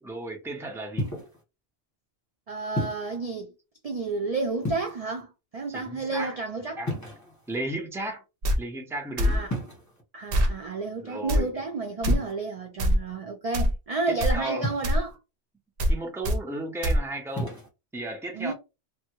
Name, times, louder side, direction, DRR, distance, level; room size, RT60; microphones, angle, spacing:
voice 1, 0.0-1.1 5.7-6.4 6.8-6.9 7.5-8.2 8.6-9.5 11.0-11.5 14.1-14.7 15.9-17.6 17.9-18.5, right 1 dB, 5° right, 0.6 m, -34 dB
sound 1, 1.0-1.4 2.8-3.2 4.6-5.2 6.8-7.6 9.5-10.0 12.0-12.3 14.6-15.1 17.3-17.7, left 1 dB, 15° left, 1.2 m, -32 dB
voice 2, 2.5-3.5 3.8-6.8 9.2-9.5 10.1-15.2 18.3-18.5, right 3 dB, 50° right, 0.5 m, -31 dB
sound 2, 8.4-8.6 9.2-9.4 10.3-10.5 11.3-11.4 12.0-12.2 12.8-13.0 13.5-13.7 14.2-14.4 14.8-15.0 15.8-16.0 16.2-16.4 16.8-17.0, equal, 65° right, 0.8 m, -22 dB
3.3 x 2.1 x 3.0 m
omnidirectional pair, 1.1 m